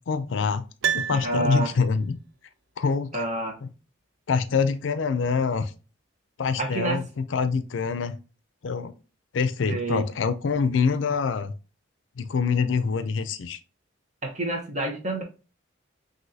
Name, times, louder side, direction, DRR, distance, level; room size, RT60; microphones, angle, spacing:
voice 1, 0.1-0.6 0.9-2.2 2.8-3.2 3.6-3.7 4.3-5.7 6.4-8.2 8.6-8.9 9.3-11.5 12.2-13.6, left 5 dB, 75° left, 0.4 m, -25 dB
Piano, 0.8-2.1 2.4-2.5, right 8 dB, 75° right, 0.5 m, -30 dB
voice 2, 1.1-1.7 3.1-3.6 6.6-7.0 9.7-10.1 14.2-15.2, right 2 dB, 40° right, 1.0 m, -28 dB
6.1 x 2.7 x 2.7 m
head